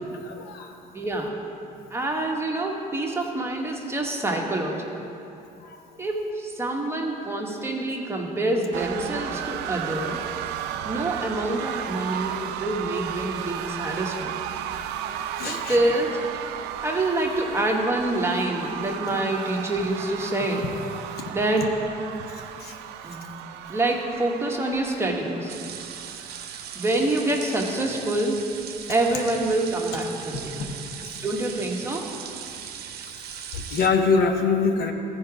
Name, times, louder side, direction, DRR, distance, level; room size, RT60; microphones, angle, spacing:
voice 1, 0.2-0.7 5.6-5.8 15.4-15.8 22.6-22.7 33.5-34.9, left 4 dB, 70° left, 4 dB, 0.9 m, -24 dB
voice 2, 0.9-1.4 1.9-5.1 6.0-10.3 10.8-14.4 15.4-16.3 16.8-20.7 21.3-21.8 23.0-23.3 23.7-25.6 26.7-28.5 28.9-30.6 31.2-32.1, right 2 dB, 15° right, 0 dB, 1.1 m, -26 dB
sound 1, 8.7-27.8, right 10 dB, 90° right, 0.4 m, -34 dB
sound 2, 25.5-33.9, right 8 dB, 70° right, 0.7 m, -39 dB
14.0 x 4.8 x 4.8 m, 2.7 s
cardioid pair, 110°, 17 cm